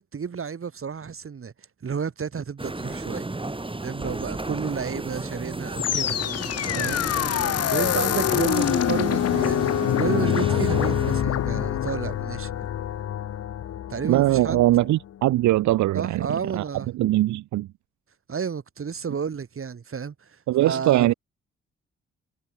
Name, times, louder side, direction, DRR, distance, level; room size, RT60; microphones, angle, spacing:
voice 1, 0.0-1.5 1.8-3.3 3.8-6.2 6.7-7.0 7.7-9.7 10.0-12.5 13.9-14.6 15.9-16.9 18.3-20.3 20.6-21.1, right 6 dB, 45° right, 4.2 m, -31 dB
sound 1, 2.6-11.2, right 2 dB, 15° right, 4.1 m, -33 dB
sound 2, 5.8-14.9, left 10 dB, 55° left, 1.1 m, -25 dB
voice 2, 14.1-16.3 16.5-16.6 16.9-17.7 20.5-21.1, right 16 dB, 75° right, 2.0 m, -21 dB
hypercardioid pair, 45°, 29 cm